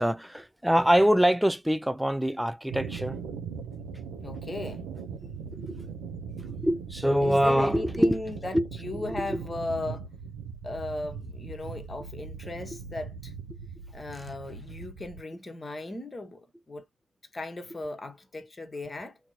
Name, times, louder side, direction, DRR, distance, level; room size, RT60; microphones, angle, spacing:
voice 1, 0.0-3.2 5.6-5.9 6.4-8.2 8.5-8.7 9.1-9.4, equal, 5° right, 0.4 m, -24 dB
sound 1, 2.7-15.2, right 6 dB, 75° right, 0.6 m, -40 dB
voice 2, 4.2-4.8 7.2-10.1 10.6-13.3 13.9-16.8 17.3-19.2, left 2 dB, 25° left, 1.1 m, -36 dB
2.9 x 2.5 x 2.6 m
supercardioid pair, 65°, 0 cm